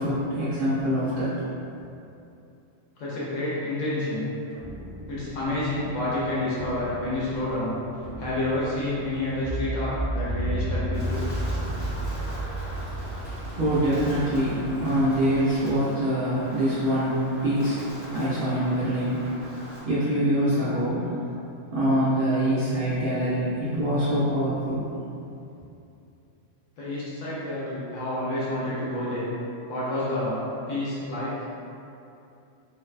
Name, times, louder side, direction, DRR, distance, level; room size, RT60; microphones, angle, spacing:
voice 1, 0.0-1.5 12.7-21.3 21.7-24.9, equal, 60° right, -11 dB, 0.6 m, -25 dB
voice 2, 3.0-4.3 5.1-7.8 8.2-11.2 26.8-29.3 29.7-30.4 30.7-31.3, left 1 dB, 75° left, -9 dB, 1.0 m, -29 dB
sound 1, 4.5-15.8, right 1 dB, 45° left, 0.7 m, -33 dB
Wind, 10.9-19.8, equal, 20° right, 0.7 m, -42 dB
2.5 x 2.1 x 2.3 m, 2.7 s
omnidirectional pair, 1.3 m